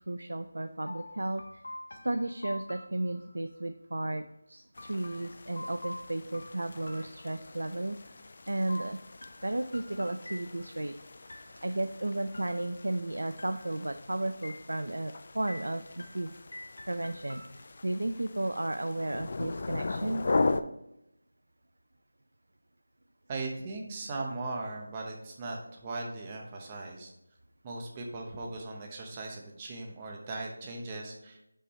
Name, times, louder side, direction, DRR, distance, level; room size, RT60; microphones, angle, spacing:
voice 1, 0.1-1.6 2.0-8.0 8.5-9.0 9.4-10.9 11.3-16.3 16.9-17.4 17.8-20.2, right 1 dB, 80° right, 8 dB, 0.4 m, -34 dB
sound 1, 0.9-3.6 4.8-7.8 8.7-10.9 11.3-11.9 12.3-13.0 13.4-14.0 14.4-15.1 15.5-17.9, left 1 dB, 65° left, 0.8 m, -47 dB
sound 2, 4.7-20.6, left 3 dB, 40° left, 0.3 m, -38 dB
voice 2, 23.3-27.1 27.6-31.4, right 2 dB, 15° right, 0 dB, 0.7 m, -38 dB
5.4 x 5.2 x 4.1 m, 0.82 s
figure-of-eight pair, 175°, 0 cm